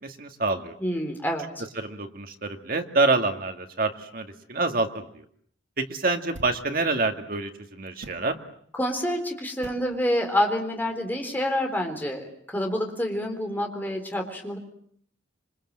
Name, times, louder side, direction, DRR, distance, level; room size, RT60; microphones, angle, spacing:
voice 1, 0.0-0.7 1.8-5.2 5.8-8.4, right 3 dB, 50° right, 5 dB, 2.3 m, -27 dB
voice 2, 0.8-1.6 8.8-14.6, equal, 10° left, 3 dB, 4.0 m, -27 dB
sound 1, 6.3-6.7 8.0-8.3 9.6-9.9, right 1 dB, 85° right, 2.3 m, -43 dB
27.5 x 25.0 x 7.7 m, 0.64 s
head